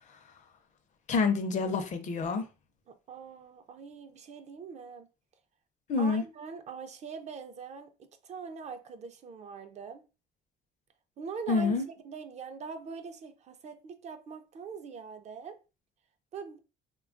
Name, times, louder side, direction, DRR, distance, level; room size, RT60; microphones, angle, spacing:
voice 1, 1.1-2.4 5.9-6.2 11.5-11.8, left 4 dB, 45° left, 0.5 m, -27 dB
voice 2, 2.9-5.1 6.0-7.9 8.2-10.0 11.2-15.6 16.3-16.6, right 5 dB, 45° right, 0.4 m, -42 dB
3.1 x 2.2 x 2.4 m
cardioid pair, 110°, 17 cm